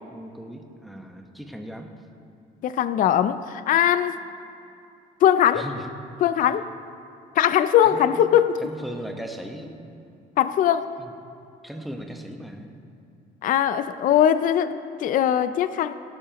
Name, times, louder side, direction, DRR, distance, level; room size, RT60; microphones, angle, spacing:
voice 1, 0.1-1.9 5.5-5.9 7.8-8.2 8.6-9.8 11.0-11.1 11.6-12.7, equal, ahead, 3 dB, 1.2 m, -37 dB
voice 2, 2.6-4.1 5.2-5.6 6.2-6.7 7.4-8.6 10.4-10.9 13.4-15.9, left 10 dB, 50° left, 13 dB, 0.4 m, -20 dB
17.5 x 12.0 x 3.0 m, 2.6 s
cardioid pair, 110°, 17 cm